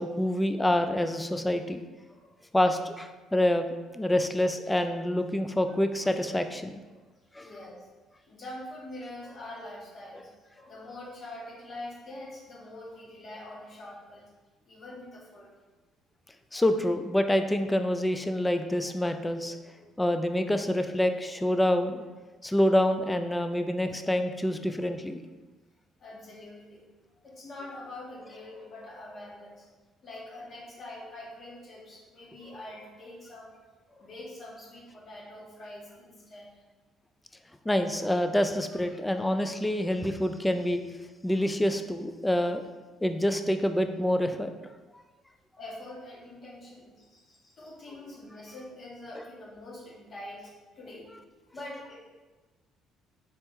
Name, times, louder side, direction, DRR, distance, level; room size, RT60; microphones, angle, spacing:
voice 1, 0.0-1.8 2.5-3.7 3.9-6.8 7.4-7.5 16.5-19.6 20.0-22.0 22.4-25.2 37.7-40.8 41.2-42.6 43.0-44.5, left 1 dB, 10° left, 8 dB, 0.4 m, -27 dB
voice 2, 2.1-2.5 6.9-7.0 7.4-7.9 8.2-14.3 14.7-15.5 19.8-20.0 26.0-26.8 27.1-29.7 30.0-33.5 33.9-36.6 37.9-38.0 45.6-51.1 51.5-52.0, left 1 dB, 50° left, -4 dB, 1.4 m, -44 dB
4.2 x 2.8 x 3.5 m, 1.3 s
supercardioid pair, 70°, 0 cm